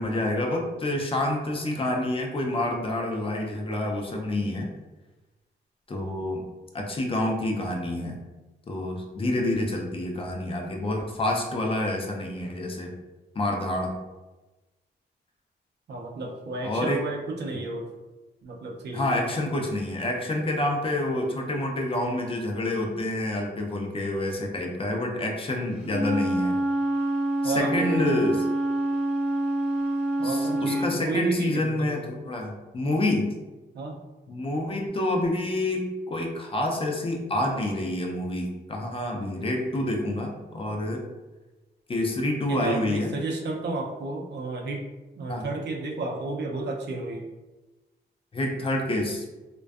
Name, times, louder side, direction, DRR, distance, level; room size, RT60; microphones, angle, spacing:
voice 1, 0.0-4.7 5.9-6.4 6.7-8.2 8.7-12.9 13.3-14.0 16.6-17.0 18.9-26.6 27.4-28.4 30.2-33.3 34.3-41.0 41.9-43.2 45.3-45.5 48.3-49.2, left 1 dB, 30° left, 1 dB, 0.4 m, -28 dB
voice 2, 15.9-17.9 18.4-19.3 27.4-28.0 30.2-32.0 33.7-34.0 42.5-44.8 45.2-47.3, right 2 dB, 70° right, 0 dB, 0.5 m, -32 dB
Wind instrument woodwind instrument, 25.8-30.9, right 1 dB, 5° right, 0.7 m, -26 dB
2.5 x 2.2 x 2.3 m, 1.1 s
wide cardioid pair, 105°, 18 cm